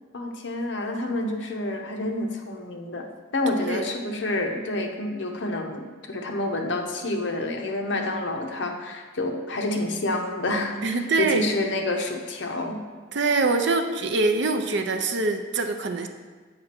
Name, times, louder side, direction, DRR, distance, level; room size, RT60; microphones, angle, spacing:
voice 1, 0.1-12.8, left 2 dB, 65° left, 3 dB, 0.8 m, -28 dB
voice 2, 10.8-11.4 13.1-16.1, right 3 dB, 60° right, 6 dB, 0.6 m, -24 dB
7.8 x 5.1 x 4.4 m, 1.4 s
head